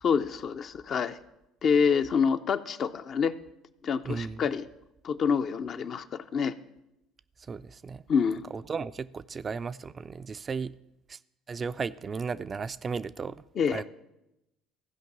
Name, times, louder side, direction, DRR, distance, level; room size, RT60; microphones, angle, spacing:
voice 1, 0.0-1.2 1.6-3.3 3.8-4.7 5.0-6.5 8.1-8.4 13.6-13.8, left 6 dB, 50° left, 9 dB, 0.6 m, -27 dB
voice 2, 4.0-4.4 7.5-8.0 8.5-10.7 11.1-11.2 11.5-13.4 13.7-13.8, right 5 dB, 35° right, 12 dB, 0.4 m, -35 dB
15.0 x 5.2 x 7.3 m, 0.89 s
hypercardioid pair, 65°, 0 cm